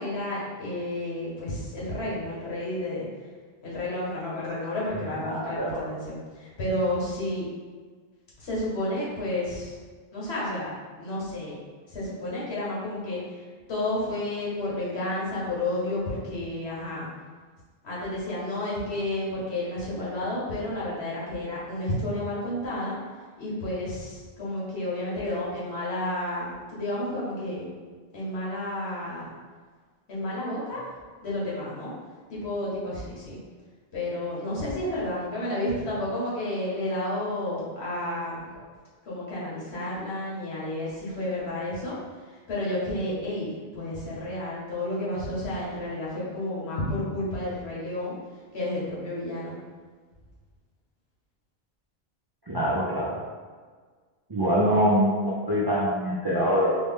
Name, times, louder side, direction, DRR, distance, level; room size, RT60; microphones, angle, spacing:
voice 1, 0.0-3.1 3.6-7.5 8.4-9.7 10.1-11.6 11.9-13.4 13.7-17.1 17.8-23.0 23.4-27.7 28.1-29.3 30.1-30.8 31.2-31.9 32.3-33.4 33.9-38.4 39.0-41.9 42.3-48.1 48.5-49.5, left 1 dB, 85° left, -7 dB, 1.4 m, -31 dB
voice 2, 5.3-5.8 52.5-53.2 54.3-56.7, equal, 35° right, -6 dB, 0.4 m, -24 dB
4.0 x 2.1 x 3.5 m, 1.5 s
omnidirectional pair, 1.1 m